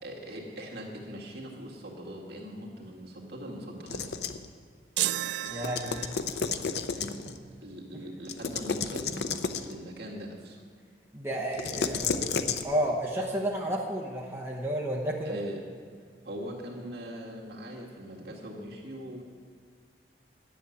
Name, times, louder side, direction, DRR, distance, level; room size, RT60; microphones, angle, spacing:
voice 1, 0.0-4.1 6.9-7.1 7.6-9.3 9.6-10.6 15.2-15.6 16.2-19.2, equal, 60° right, -2 dB, 2.1 m, -41 dB
sound 1, 3.9-4.5 5.5-7.4 8.2-9.8 11.5-12.6, left 5 dB, 65° left, 0.6 m, -32 dB
sound 2, 5.0-6.5, right 14 dB, 75° right, 0.3 m, -32 dB
voice 2, 5.5-6.0 7.2-7.3 11.1-15.4, right 1 dB, 15° right, -2 dB, 1.0 m, -32 dB
10.5 x 6.9 x 8.6 m, 2.1 s
head